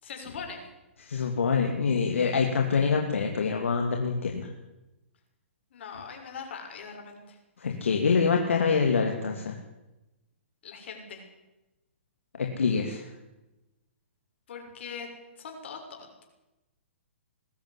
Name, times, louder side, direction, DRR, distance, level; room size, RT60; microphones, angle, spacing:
voice 1, 0.0-0.6 5.7-7.4 10.6-11.3 14.5-15.1 15.4-16.2, left 6 dB, 60° left, 3 dB, 6.7 m, -41 dB
voice 2, 1.0-4.5 7.6-9.6 12.3-13.1, left 5 dB, 80° left, 3 dB, 2.8 m, -25 dB
21.0 x 13.5 x 9.9 m, 1.0 s
hypercardioid pair, 135°, 7 cm